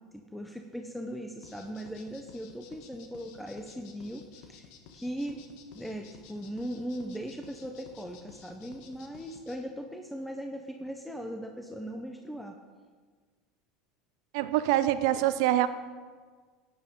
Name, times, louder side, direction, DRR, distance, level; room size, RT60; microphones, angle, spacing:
voice 1, 0.1-4.7 4.9-5.4 5.7-12.6, equal, ahead, 3 dB, 0.9 m, -39 dB
Hiss Beat, 1.4-9.6, left 6 dB, 65° left, 1.3 m, -53 dB
voice 2, 14.3-15.7, right 14 dB, 70° right, 13 dB, 0.7 m, -25 dB
12.0 x 9.3 x 3.8 m, 1.5 s
hypercardioid pair, 85°, 3 cm